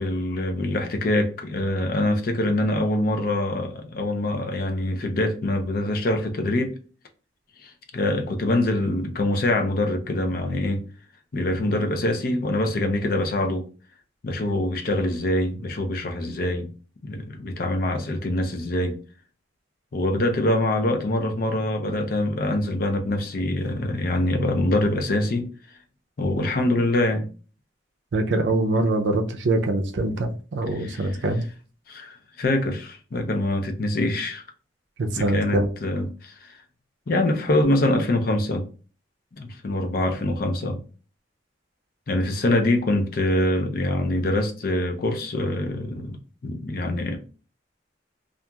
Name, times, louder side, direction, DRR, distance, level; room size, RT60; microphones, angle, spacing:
voice 1, 0.0-6.8 7.6-10.8 11.3-13.7 14.2-16.7 17.0-19.0 19.9-25.5 26.2-27.3 30.8-31.1 31.9-34.4 35.2-36.6 37.1-38.7 39.4-40.8 42.1-46.2 46.4-47.2, left 1 dB, 50° left, 0.5 m, -24 dB
voice 2, 28.1-31.5 35.0-35.7, right 2 dB, 75° right, 0.5 m, -24 dB
2.8 x 2.4 x 2.3 m
head